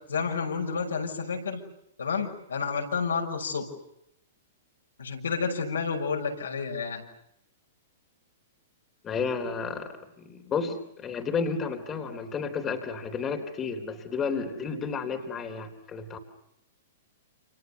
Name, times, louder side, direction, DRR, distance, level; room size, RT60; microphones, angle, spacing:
voice 1, 0.1-1.6 2.0-3.7 5.0-7.0, left 5 dB, 75° left, 2 dB, 6.1 m, -30 dB
voice 2, 9.0-16.2, left 5 dB, 20° left, 4 dB, 3.7 m, -32 dB
29.0 x 28.5 x 6.9 m, 0.78 s
figure-of-eight pair, 110°, 0 cm